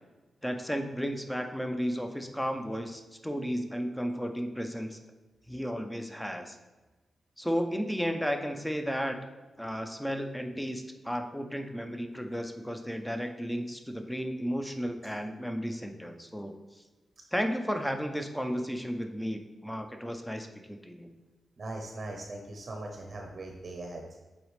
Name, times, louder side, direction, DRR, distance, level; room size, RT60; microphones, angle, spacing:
voice 1, 0.4-5.0 5.5-6.6 7.4-9.2 9.6-16.5 17.3-21.1, equal, 5° left, 5 dB, 0.6 m, -33 dB
voice 2, 21.6-24.2, right 2 dB, 45° right, 2 dB, 0.7 m, -40 dB
8.2 x 4.0 x 3.2 m, 1.2 s
wide cardioid pair, 115°, 0 cm